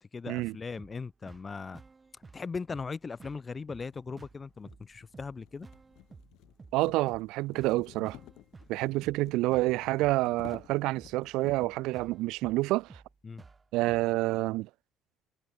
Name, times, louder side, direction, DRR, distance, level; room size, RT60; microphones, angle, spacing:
voice 1, 0.0-1.8 2.3-5.7 13.2-13.4, left 4 dB, 20° left, 0.8 m, -39 dB
sound 1, 0.8-14.2, right 4 dB, 15° right, 7.4 m, -54 dB
sound 2, 3.9-11.9, left 17 dB, 70° left, 2.0 m, -53 dB
voice 2, 6.7-8.2 8.7-13.0 13.7-14.7, right 19 dB, 85° right, 0.4 m, -28 dB
cardioid pair, 180°, 0 cm